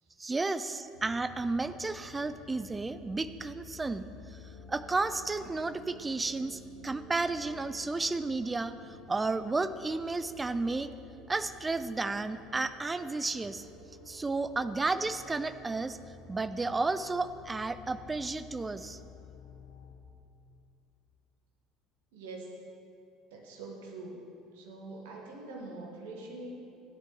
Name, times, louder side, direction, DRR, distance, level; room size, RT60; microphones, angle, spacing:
voice 1, 0.2-4.4 4.7-8.8 9.1-10.9 11.3-13.7 14.1-16.0 16.3-19.0, right 3 dB, 15° right, 12 dB, 0.5 m, -32 dB
sound 1, 0.9-20.0, left 3 dB, 85° left, 1.6 m, -52 dB
voice 2, 22.1-22.6 23.3-24.2 24.5-26.5, right 2 dB, 65° right, -1 dB, 1.9 m, -44 dB
15.5 x 10.5 x 3.4 m, 2.6 s
figure-of-eight pair, 65°, 0 cm